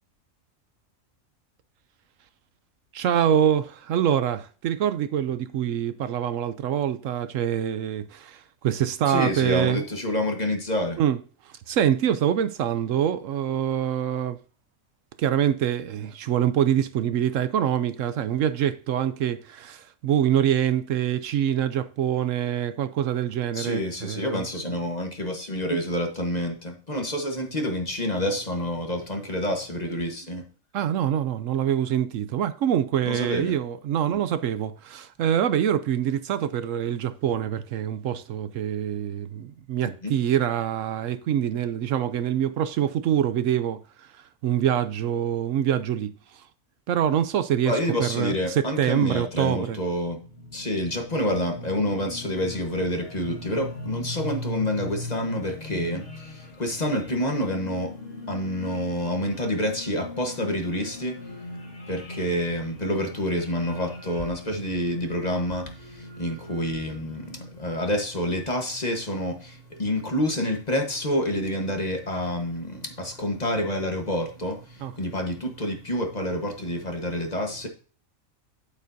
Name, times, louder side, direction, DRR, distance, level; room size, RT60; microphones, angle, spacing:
voice 1, 2.9-9.8 11.0-11.2 11.4-14.4 15.2-24.5 30.7-46.5 46.9-49.8 74.8-74.9, right 10 dB, 70° right, 0.9 m, -25 dB
voice 2, 9.1-11.0 23.5-30.4 33.0-33.6 34.1-34.2 40.0-40.1 47.6-50.2 50.5-77.7, left 1 dB, 30° left, 1.3 m, -28 dB
sound 1, 49.7-67.7, left 2 dB, 50° left, 1.6 m, -40 dB
9.0 x 8.2 x 2.7 m
omnidirectional pair, 1.4 m